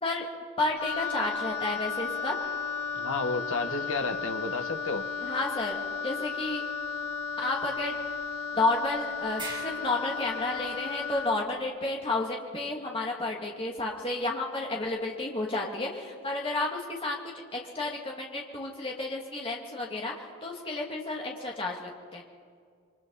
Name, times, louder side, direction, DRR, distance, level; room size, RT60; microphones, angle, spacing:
voice 1, 0.6-2.4 5.2-5.8 6.0-6.6 7.4-8.0 8.5-17.2 17.5-20.1 20.4-22.2, left 2 dB, 25° left, -1 dB, 2.6 m, -31 dB
Wind instrument woodwind instrument, 0.8-11.4, left 5 dB, 90° left, 1.3 m, -34 dB
sound 1, 2.4-3.7 8.3-8.4 8.7-8.8 9.4-10.3, right 3 dB, 20° right, 1.9 m, -45 dB
voice 2, 2.9-5.0, left 3 dB, 65° left, 6 dB, 1.4 m, -31 dB
27.5 x 23.5 x 4.2 m, 2.2 s
head